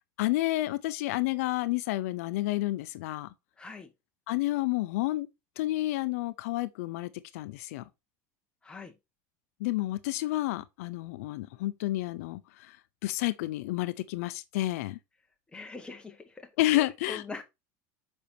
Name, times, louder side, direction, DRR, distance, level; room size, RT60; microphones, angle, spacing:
voice 1, 0.2-3.3 4.3-5.3 5.6-7.8 9.6-12.8 13.0-15.0 16.6-17.2, left 17 dB, 80° left, 0.5 m, -30 dB
voice 2, 3.6-3.9 8.6-8.9 15.5-17.4, left 4 dB, 10° left, 1.3 m, -43 dB
6.8 x 5.2 x 2.8 m
supercardioid pair, 130°, 8 cm